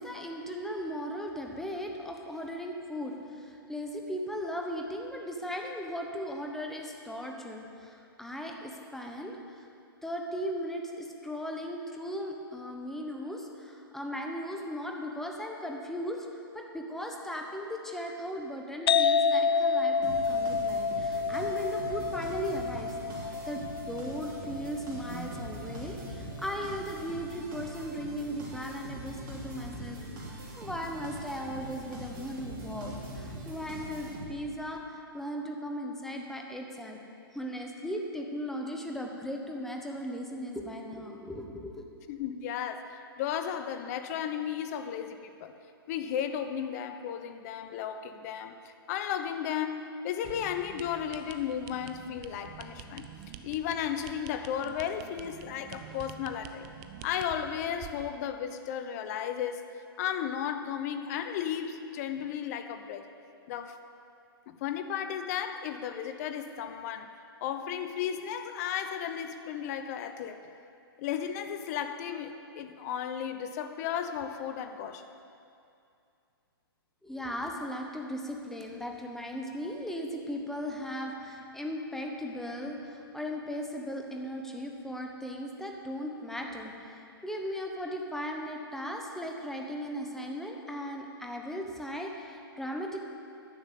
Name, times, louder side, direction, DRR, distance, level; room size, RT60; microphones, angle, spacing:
voice 1, 0.0-9.7 10.0-37.0 37.3-41.8 77.0-93.0, equal, 5° left, 1 dB, 1.1 m, -37 dB
sound 1, 18.9-26.3, left 5 dB, 75° left, 0.4 m, -29 dB
sound 2, 20.0-34.6, right 1 dB, 55° right, 3.4 m, -42 dB
voice 2, 42.1-45.5 45.9-53.1 53.4-56.7 57.0-59.7 60.0-63.1 63.5-63.8 64.5-67.1 67.4-70.4 71.0-75.1, left 9 dB, 40° left, 9 dB, 0.8 m, -34 dB
sound 3, 50.2-58.1, right 9 dB, 30° right, 0.6 m, -47 dB
10.5 x 7.1 x 8.4 m, 2.5 s
hypercardioid pair, 130°, 13 cm